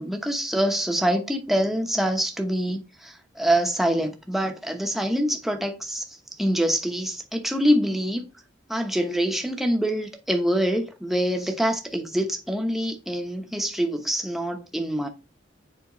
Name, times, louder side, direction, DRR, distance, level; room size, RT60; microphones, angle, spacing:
voice 1, 0.0-6.0 6.4-8.2 8.7-15.1, equal, ahead, 0.9 m, -25 dB
7.2 x 4.8 x 3.1 m
head